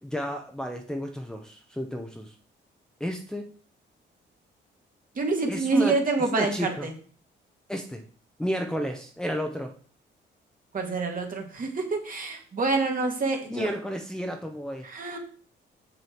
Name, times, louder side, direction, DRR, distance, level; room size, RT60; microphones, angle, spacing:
voice 1, 0.0-2.3 3.0-3.5 5.5-6.0 6.4-6.9 7.7-8.0 8.4-9.7 13.5-14.9, equal, 5° left, 2 dB, 1.0 m, -32 dB
voice 2, 5.2-6.9 10.7-13.7 14.8-15.2, right 3 dB, 45° right, 2 dB, 2.3 m, -27 dB
6.8 x 6.4 x 4.5 m, 0.43 s
cardioid pair, 90°, 20 cm